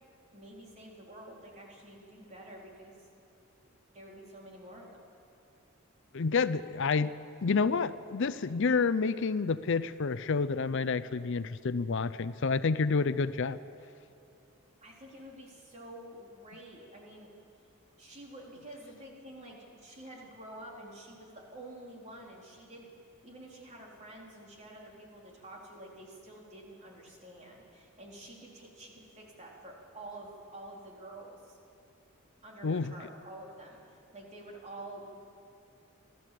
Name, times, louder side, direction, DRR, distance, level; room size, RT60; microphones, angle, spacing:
voice 1, 0.3-3.1 3.9-5.0 14.8-17.3 18.0-22.9 23.2-31.6 32.4-35.3, right 1 dB, 35° right, -2 dB, 3.8 m, -49 dB
voice 2, 6.1-7.1 7.4-13.6 32.6-32.9, left 4 dB, 60° left, 14 dB, 0.6 m, -29 dB
26.0 x 14.0 x 7.7 m, 2.5 s
head